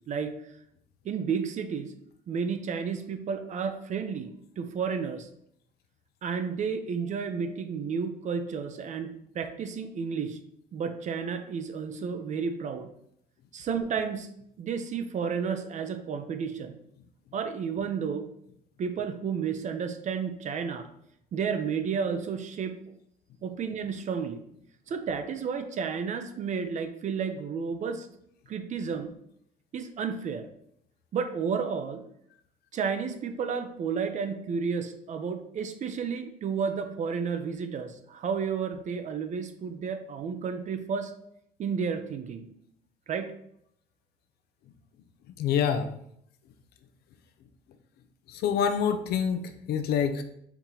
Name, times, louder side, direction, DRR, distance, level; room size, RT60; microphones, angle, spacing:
voice 1, 1.0-1.9 2.3-5.3 6.2-10.4 10.7-12.9 13.5-14.3 14.6-16.8 17.3-18.3 18.8-20.9 21.3-22.8 23.4-24.4 24.9-28.1 28.5-29.1 29.7-30.5 31.1-32.0 32.7-41.1 41.6-42.5 43.1-43.3, right 6 dB, 45° right, 8 dB, 0.6 m, -32 dB
voice 2, 45.4-45.9 48.3-50.2, left 7 dB, 70° left, 9 dB, 0.5 m, -26 dB
4.6 x 2.8 x 3.8 m, 0.72 s
cardioid pair, 110°, 17 cm